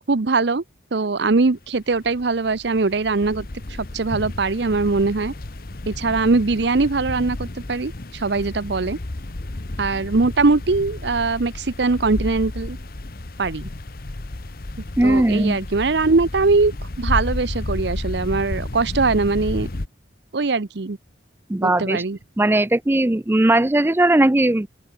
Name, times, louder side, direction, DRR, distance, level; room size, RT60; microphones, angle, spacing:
voice 1, 0.1-0.6 0.9-3.5 3.8-5.3 5.9-9.0 9.8-12.8 13.4-13.7 15.0-19.7 20.3-21.0 21.6-22.2, right 3 dB, 65° right, 0.7 m, -21 dB
sound 1, 1.3-1.4 1.7-19.9, left 2 dB, 50° left, 1.1 m, -32 dB
voice 2, 15.0-15.6 21.5-22.0 22.4-24.7, right 1 dB, 10° right, 0.4 m, -18 dB
open air
head